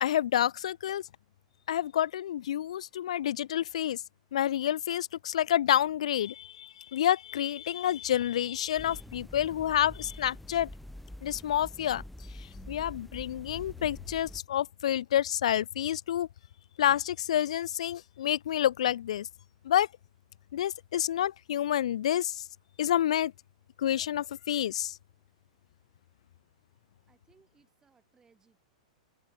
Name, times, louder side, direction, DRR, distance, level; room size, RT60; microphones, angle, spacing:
voice 1, 0.0-1.0 1.7-4.0 4.3-10.7 11.2-12.0 12.4-16.3 16.8-19.3 19.6-19.9 20.5-22.4 22.8-23.3 23.8-25.0, left 11 dB, 70° left, 0.3 m, -28 dB
sound 1, 8.8-14.4, left 1 dB, 5° left, 1.8 m, -46 dB
voice 2, 27.1-28.6, right 5 dB, 15° right, 5.5 m, -66 dB
open air
hypercardioid pair, 100°, 4 cm